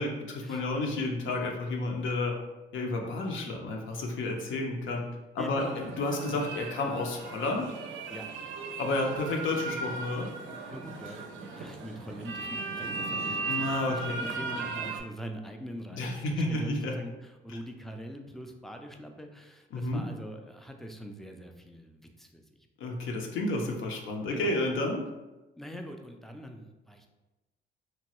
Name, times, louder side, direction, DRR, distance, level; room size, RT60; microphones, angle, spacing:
voice 1, 0.0-2.3 2.7-5.0 5.3-7.7 8.8-10.3 13.5-14.2 15.9-17.0 17.5-17.6 19.7-20.0 22.8-25.0, left 2 dB, 75° left, 1 dB, 0.6 m, -31 dB
voice 2, 5.4-5.9 8.1-8.2 10.7-22.4 24.3-24.6 25.6-27.1, equal, ahead, 4 dB, 0.3 m, -43 dB
sound 1, 5.4-15.0, right 4 dB, 80° right, 0.5 m, -37 dB
2.9 x 2.2 x 2.9 m, 1.1 s
cardioid pair, 90°, 20 cm